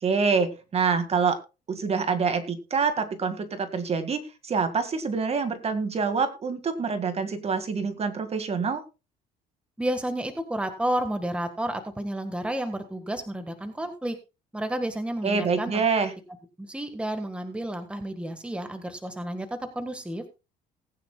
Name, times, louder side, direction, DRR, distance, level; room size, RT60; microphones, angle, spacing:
voice 1, 0.0-1.4 1.7-8.8 15.2-16.1, right 5 dB, 35° right, 9 dB, 2.0 m, -26 dB
voice 2, 9.8-14.2 14.5-15.8 16.6-20.2, right 1 dB, 5° right, 7 dB, 1.6 m, -31 dB
19.5 x 9.7 x 2.3 m, 0.29 s
cardioid pair, 110°, 17 cm